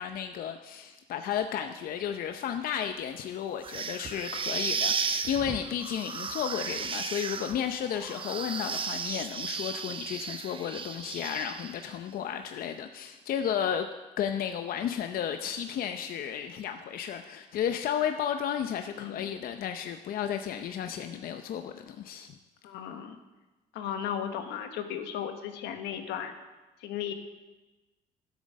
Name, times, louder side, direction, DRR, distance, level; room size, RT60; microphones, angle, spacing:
voice 1, 0.0-13.9 14.2-22.3, left 9 dB, 60° left, 7 dB, 0.7 m, -33 dB
sound 1, 3.6-11.9, right 5 dB, 30° right, 0.7 m, -34 dB
voice 2, 18.9-19.3 22.6-23.2 23.7-26.3 26.8-27.1, left 9 dB, 85° left, 6 dB, 1.3 m, -35 dB
11.5 x 8.2 x 6.4 m, 1.1 s
cardioid pair, 110°, 17 cm